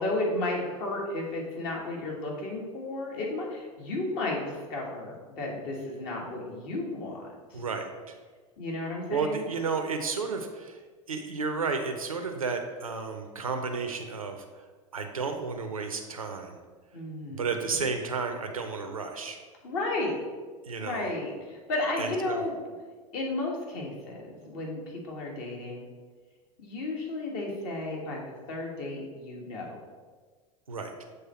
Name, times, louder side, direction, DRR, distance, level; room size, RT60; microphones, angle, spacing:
voice 1, 0.0-7.6 8.6-9.5 16.9-17.5 17.8-17.9 19.6-20.2 20.8-22.6 23.1-25.8 26.6-28.2 28.5-29.8, left 2 dB, 55° left, -1 dB, 1.6 m, -33 dB
voice 2, 7.5-8.2 9.1-10.8 11.1-14.4 14.9-16.6 17.3-19.4 20.7-21.1 22.0-22.4 30.7-30.9, right 4 dB, 85° right, 5 dB, 0.5 m, -32 dB
7.0 x 3.3 x 4.3 m, 1.4 s
figure-of-eight pair, 85°, 18 cm